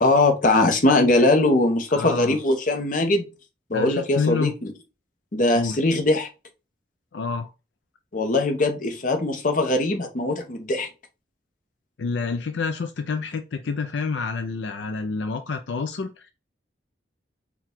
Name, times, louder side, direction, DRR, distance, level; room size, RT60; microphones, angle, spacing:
voice 1, 0.0-3.3 3.7-4.7 5.3-6.3 8.1-10.9, left 2 dB, 45° left, 0.8 m, -21 dB
voice 2, 1.9-2.4 3.7-4.5 5.5-5.8 7.1-7.5 12.0-16.3, left 4 dB, 75° left, 0.5 m, -28 dB
4.6 x 2.3 x 3.7 m
head